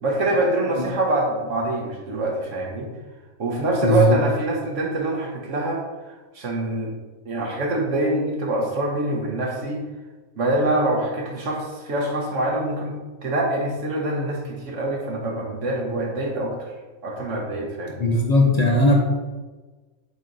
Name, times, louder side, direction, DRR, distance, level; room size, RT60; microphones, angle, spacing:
voice 1, 0.0-2.9 3.4-5.8 6.1-6.9 7.2-9.8 10.4-16.7 17.0-18.0, right 1 dB, 55° right, -1 dB, 1.4 m, -25 dB
voice 2, 3.8-4.2 18.0-19.0, left 1 dB, 40° left, -1 dB, 0.6 m, -18 dB
8.5 x 3.0 x 3.9 m, 1.3 s
omnidirectional pair, 1.6 m